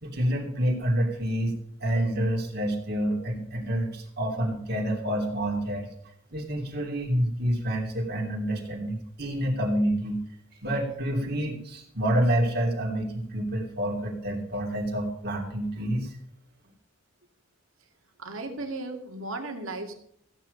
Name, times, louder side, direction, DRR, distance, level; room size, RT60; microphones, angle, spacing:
voice 1, 0.0-1.5 1.8-5.9 6.3-10.2 10.6-16.2, right 1 dB, 50° right, 0 dB, 3.0 m, -28 dB
voice 2, 18.2-20.0, right 2 dB, 75° right, 4 dB, 2.5 m, -35 dB
15.0 x 9.2 x 5.2 m, 0.67 s
head